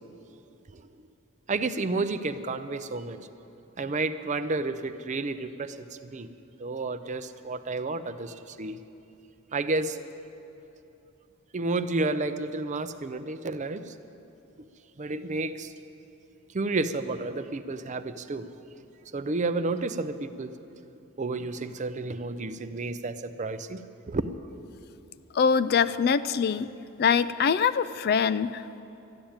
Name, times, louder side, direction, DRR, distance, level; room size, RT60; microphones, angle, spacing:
voice 1, 1.5-3.2 3.8-6.3 6.6-8.8 9.5-10.0 11.5-13.9 15.0-15.7 16.5-18.5 19.1-20.5 21.2-24.2, right 3 dB, 35° right, 11 dB, 0.5 m, -31 dB
voice 2, 25.3-26.7 27.0-28.8, left 6 dB, 45° left, 15 dB, 0.3 m, -24 dB
13.0 x 10.5 x 8.7 m, 2.8 s
head